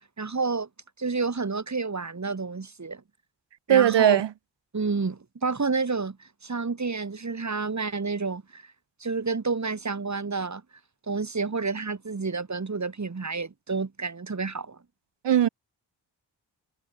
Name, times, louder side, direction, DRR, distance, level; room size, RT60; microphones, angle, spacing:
voice 1, 0.2-0.7 1.0-3.0 3.7-4.2 4.7-8.6 9.0-10.6 11.1-14.8, right 4 dB, 40° right, 5.2 m, -29 dB
voice 2, 3.7-4.3 15.2-15.5, right 10 dB, 85° right, 1.6 m, -19 dB
cardioid pair, 70°, 42 cm